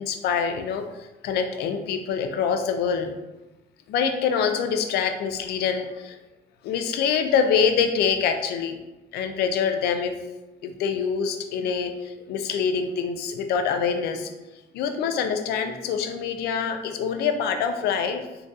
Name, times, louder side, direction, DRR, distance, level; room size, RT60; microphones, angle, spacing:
voice 1, 0.0-3.1 3.9-6.2 6.6-8.8 9.1-10.2 10.6-14.3 14.7-18.3, left 6 dB, 75° left, 6 dB, 0.4 m, -25 dB
3.8 x 2.5 x 2.4 m, 1.1 s
cardioid pair, 110°, 17 cm